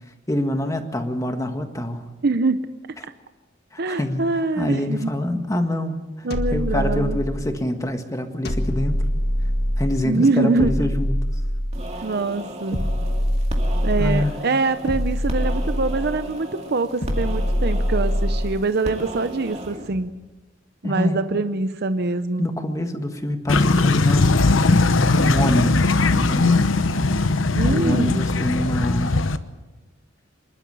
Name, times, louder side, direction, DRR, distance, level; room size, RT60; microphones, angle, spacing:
voice 1, 0.3-2.0 3.7-4.2 4.6-5.9 6.5-9.0 9.8-11.2 14.0-14.3 20.8-21.2 22.4-24.4 25.2-26.6 27.6-29.2, left 1 dB, 15° left, 6 dB, 1.6 m, -25 dB
voice 2, 2.2-2.6 3.8-5.1 6.2-7.2 10.0-10.9 12.0-12.9 13.8-20.1 20.8-22.5 27.6-28.2, right 3 dB, 55° right, 11 dB, 0.7 m, -24 dB
sound 1, 6.3-7.6 8.5-10.1 10.6-12.0 12.7-14.3 14.9-16.3 17.0-18.6, equal, 55° left, 1.9 m, -24 dB
sound 2, 11.7-20.1, right 1 dB, 35° right, 2.3 m, -36 dB
sound 3, 23.5-29.4, left 3 dB, 85° left, 1.0 m, -19 dB
26.5 x 12.0 x 8.8 m, 1.2 s
head